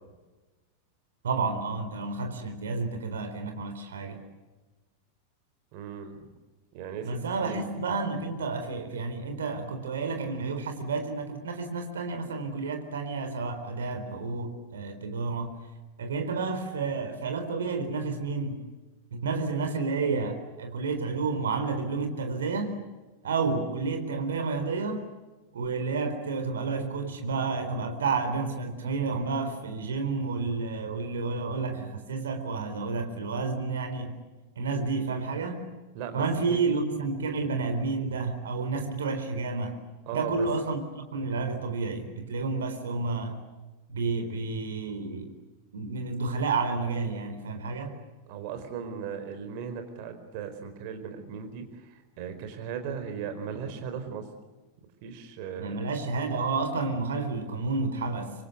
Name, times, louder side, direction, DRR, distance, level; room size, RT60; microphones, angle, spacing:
voice 1, 1.2-4.2 7.0-15.5 16.0-18.6 19.1-22.8 23.2-25.0 25.5-34.2 34.6-35.7 36.1-39.8 40.1-43.4 43.9-45.3 45.7-48.0 55.6-58.3, right 4 dB, 65° right, 7 dB, 4.1 m, -30 dB
voice 2, 5.7-6.3 6.7-7.6 35.9-36.6 40.1-40.5 48.3-54.3 55.0-55.8, right 7 dB, 45° right, 7 dB, 4.4 m, -37 dB
25.5 x 25.5 x 8.2 m, 1.2 s
figure-of-eight pair, 90°, 0 cm